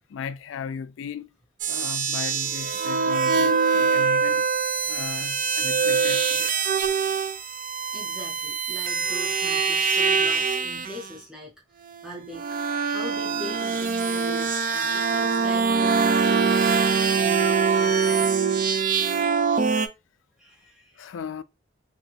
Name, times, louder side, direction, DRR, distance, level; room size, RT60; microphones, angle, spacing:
voice 1, 0.1-1.3 1.7-4.4 4.9-6.5 21.0-21.4, left 6 dB, 75° left, 0.3 m, -36 dB
sound 1, 1.6-11.1 11.9-19.9, right 5 dB, 45° right, 0.4 m, -23 dB
voice 2, 7.9-11.5 12.0-12.5 12.9-18.5 20.4-21.2, equal, 5° right, 0.6 m, -41 dB
3.0 x 2.7 x 2.7 m
head